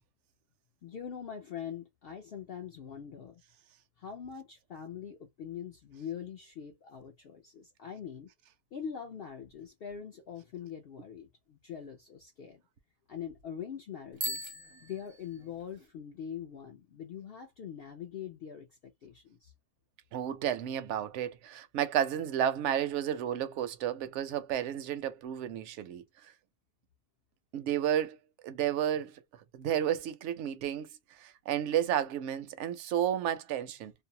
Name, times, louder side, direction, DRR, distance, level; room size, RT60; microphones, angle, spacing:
voice 1, 0.8-3.4 4.0-8.3 8.7-12.6 13.1-14.5 14.8-19.5, left 8 dB, 70° left, 0.5 m, -43 dB
Bicycle bell, 14.1-15.9, right 1 dB, 40° right, 0.4 m, -40 dB
voice 2, 20.1-26.3 27.5-28.2 28.4-29.2 29.5-33.9, right 10 dB, 65° right, 0.8 m, -32 dB
2.6 x 2.0 x 2.6 m
omnidirectional pair, 1.5 m